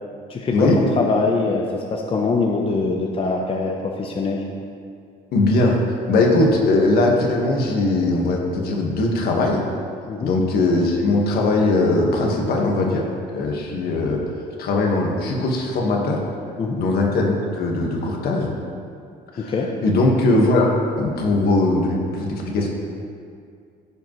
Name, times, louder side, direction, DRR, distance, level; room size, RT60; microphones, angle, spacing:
voice 1, 0.3-4.4 10.1-10.3 16.6-16.8 19.4-19.7, left 3 dB, 35° left, 0 dB, 0.8 m, -23 dB
voice 2, 5.3-5.8 6.1-9.6 10.2-14.2 14.6-16.2 16.8-18.5 19.3-19.5 19.8-20.7 21.0-22.7, left 2 dB, 65° left, 0 dB, 1.5 m, -20 dB
14.5 x 5.1 x 3.1 m, 2.3 s
cardioid pair, 110°, 17 cm